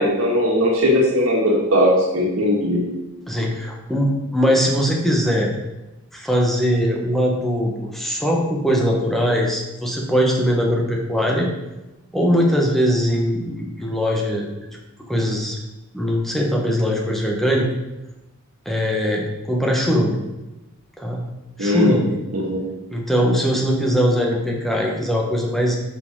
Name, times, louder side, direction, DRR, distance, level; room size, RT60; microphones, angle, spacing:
voice 1, 0.0-2.8 21.6-22.0 22.3-22.6, left 1 dB, 65° right, -4 dB, 2.2 m, -18 dB
voice 2, 3.3-5.5 6.1-11.5 12.1-14.5 15.1-15.6 15.9-17.7 18.6-20.1 21.0-21.2 21.6-22.2 22.9-25.8, equal, ahead, -1 dB, 1.3 m, -21 dB
9.5 x 6.5 x 3.8 m, 1.0 s
head